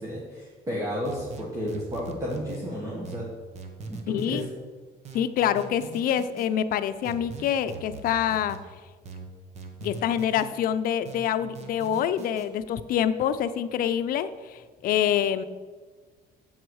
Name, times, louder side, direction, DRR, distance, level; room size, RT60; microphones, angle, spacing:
voice 1, 0.0-3.3 3.9-4.4, equal, 20° right, -3 dB, 1.6 m, -32 dB
sound 1, 1.0-2.6 3.0-4.5 5.0-6.5 7.0-8.6 9.0-10.5 11.0-12.5, right 4 dB, 40° right, 1.2 m, -41 dB
voice 2, 4.1-4.4 5.1-8.6 9.8-15.4, left 9 dB, 60° left, 11 dB, 0.6 m, -26 dB
8.0 x 7.9 x 6.3 m, 1.4 s
cardioid pair, 170°, 17 cm